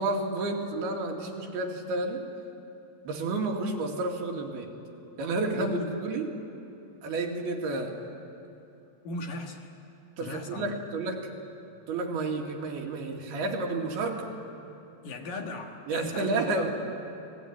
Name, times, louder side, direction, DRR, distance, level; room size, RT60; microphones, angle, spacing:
voice 1, 0.0-2.2 3.1-4.7 5.2-6.3 7.0-7.9 10.2-11.4 11.9-14.3 15.9-16.7, right 2 dB, 70° right, 1 dB, 3.9 m, -31 dB
voice 2, 5.5-6.0 9.0-9.7 10.2-10.7 15.0-16.7, left 2 dB, 60° left, 2 dB, 2.9 m, -37 dB
29.5 x 19.5 x 9.4 m, 2.8 s
omnidirectional pair, 4.9 m